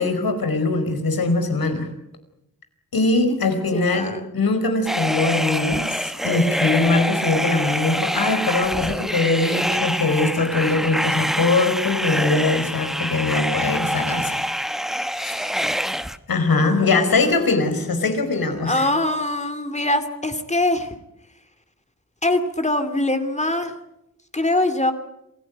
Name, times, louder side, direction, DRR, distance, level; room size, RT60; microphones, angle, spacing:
voice 1, 0.0-1.9 2.9-14.5 15.0-15.6 16.3-18.9, left 3 dB, 80° left, 7 dB, 4.9 m, -22 dB
voice 2, 3.7-4.2 16.5-17.5 18.6-20.9 22.2-23.8 24.3-24.9, left 1 dB, 20° left, 8 dB, 2.5 m, -23 dB
sound 1, 4.9-16.2, equal, ahead, 1.1 m, -25 dB
28.0 x 16.5 x 9.3 m, 0.85 s
wide cardioid pair, 95°, 35 cm